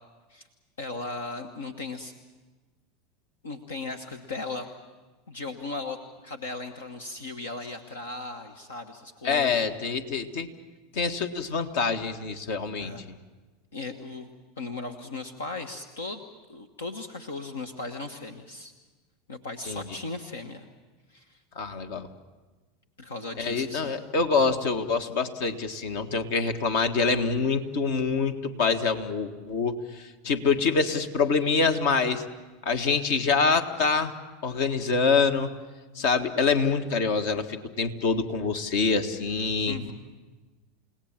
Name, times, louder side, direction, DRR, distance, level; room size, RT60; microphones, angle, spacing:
voice 1, 0.8-2.1 3.4-4.7 5.3-6.0 6.2-9.7 12.8-13.0 13.7-14.3 14.6-16.2 16.5-18.7 19.3-20.7 21.1-21.4 23.0-23.9 39.6-39.9, left 3 dB, 85° left, 6 dB, 1.2 m, -37 dB
voice 2, 9.2-10.5 10.9-12.9 19.7-19.8 21.6-22.1 23.4-32.2 32.6-34.1 34.4-35.5 36.0-39.8, left 4 dB, 70° left, 7 dB, 1.7 m, -25 dB
29.5 x 18.0 x 7.4 m, 1.3 s
hypercardioid pair, 90°, 0 cm